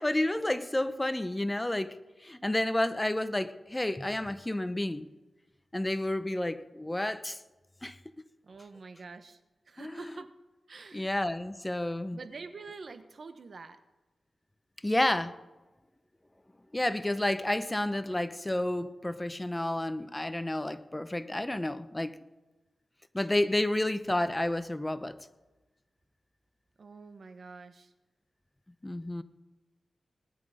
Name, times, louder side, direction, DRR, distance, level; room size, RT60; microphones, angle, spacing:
voice 1, 0.0-5.1 5.7-7.4 7.8-8.0 9.8-10.1 10.9-12.2 14.8-15.3 16.7-22.1 23.1-25.2 28.8-29.2, left 1 dB, 15° left, 0.8 m, -30 dB
voice 2, 8.4-9.4 9.7-10.3 10.7-11.1 12.1-13.8 26.8-27.9, right 4 dB, 65° right, 1.2 m, -46 dB
19.5 x 11.0 x 5.1 m
cardioid pair, 70°, 0 cm